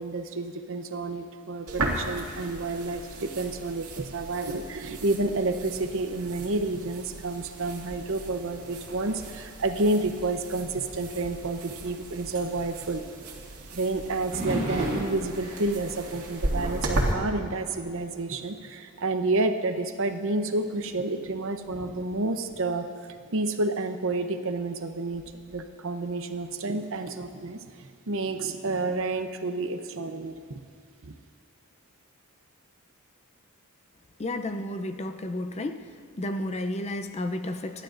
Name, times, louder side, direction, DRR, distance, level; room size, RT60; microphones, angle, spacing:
voice 1, 0.0-13.0 13.7-22.9 23.3-25.2 25.5-30.6 31.0-31.1, right 2 dB, 60° right, 7 dB, 0.8 m, -30 dB
sound 1, 1.7-17.1, right 1 dB, 80° right, 2.2 m, -36 dB
sound 2, 14.3-18.5 18.8-19.1 19.8-19.9 20.6-23.3 25.1-25.6, right 1 dB, 35° right, 4.3 m, -37 dB
voice 2, 34.2-35.8 36.2-37.8, left 1 dB, 30° left, 8 dB, 0.6 m, -32 dB
28.5 x 11.5 x 2.6 m, 2.3 s
head